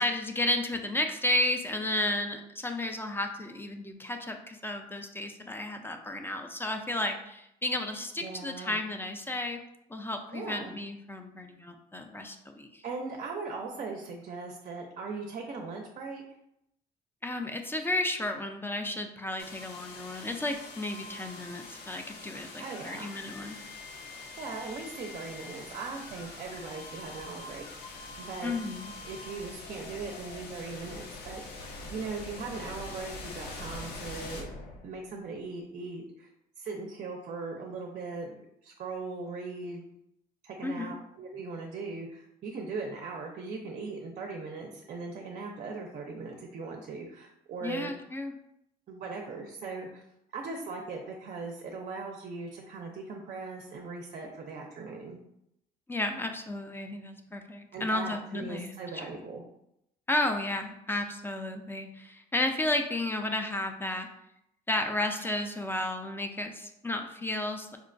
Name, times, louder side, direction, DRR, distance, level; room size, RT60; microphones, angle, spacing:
voice 1, 0.0-9.6 9.9-12.8 17.2-23.6 28.4-28.9 40.6-41.0 47.6-48.3 55.9-59.1 60.1-64.1 64.7-67.8, left 1 dB, 15° left, 5 dB, 0.3 m, -33 dB
voice 2, 8.2-8.8 10.3-10.7 12.8-16.2 22.6-23.1 24.4-28.6 29.0-34.5 34.8-36.3 36.6-39.9 40.4-47.9 48.9-50.0 50.3-55.2 57.7-59.4, right 4 dB, 45° right, 2 dB, 0.5 m, -39 dB
sound 1, 19.4-35.2, left 3 dB, 70° left, 0.7 m, -44 dB
4.5 x 2.1 x 2.5 m, 0.79 s
cardioid pair, 110°, 17 cm